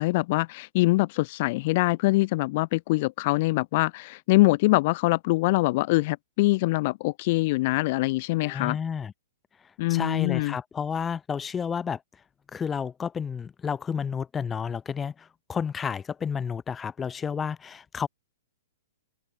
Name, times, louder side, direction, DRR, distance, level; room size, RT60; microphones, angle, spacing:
voice 1, 0.0-8.8 9.8-10.5, left 21 dB, 45° left, 1.2 m, -24 dB
voice 2, 8.4-9.1 9.6-12.0 12.5-18.1, left 6 dB, 15° left, 0.9 m, -31 dB
open air
hypercardioid pair, 135°, 0 cm